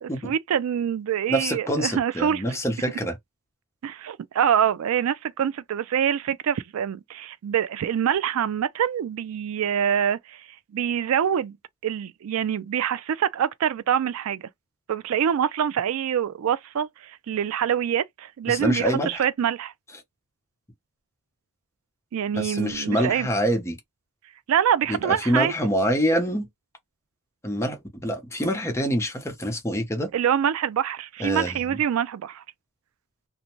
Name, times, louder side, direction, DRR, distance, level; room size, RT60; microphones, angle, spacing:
voice 1, 0.0-2.4 3.8-10.5 10.7-11.6 11.8-14.4 14.9-19.7 22.1-23.3 24.5-25.5 30.1-32.4, right 9 dB, 80° right, 0.3 m, -25 dB
voice 2, 1.3-3.2 18.5-19.2 22.3-23.8 24.9-26.5 27.4-30.1 31.2-31.8, equal, 15° left, 0.7 m, -26 dB
2.6 x 2.1 x 3.0 m
head